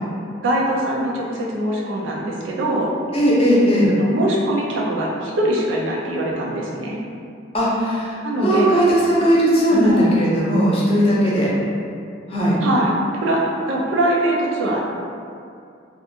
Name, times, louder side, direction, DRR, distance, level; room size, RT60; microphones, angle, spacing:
voice 1, 0.4-2.9 3.9-7.0 8.2-8.7 9.7-10.1 12.6-14.8, right 1 dB, 90° right, -4 dB, 0.5 m, -22 dB
voice 2, 3.1-3.9 7.5-11.5 12.3-12.6, equal, 30° left, -8 dB, 0.6 m, -18 dB
2.4 x 2.4 x 2.7 m, 2.4 s
head